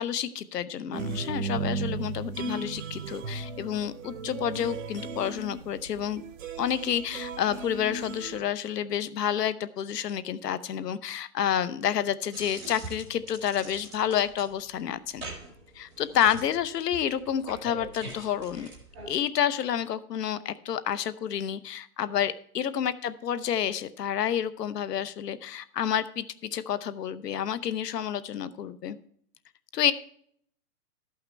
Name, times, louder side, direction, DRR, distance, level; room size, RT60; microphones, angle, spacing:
voice 1, 0.0-6.2 6.6-15.2 15.7-18.7 19.1-29.0 29.7-29.9, left 9 dB, 70° left, 15 dB, 0.9 m, -29 dB
sound 1, 0.9-8.4, right 4 dB, 50° right, 0.7 m, -36 dB
sound 2, 12.3-19.1, right 2 dB, ahead, 0.7 m, -44 dB
13.0 x 5.8 x 4.4 m, 0.63 s
hypercardioid pair, 180°, 49 cm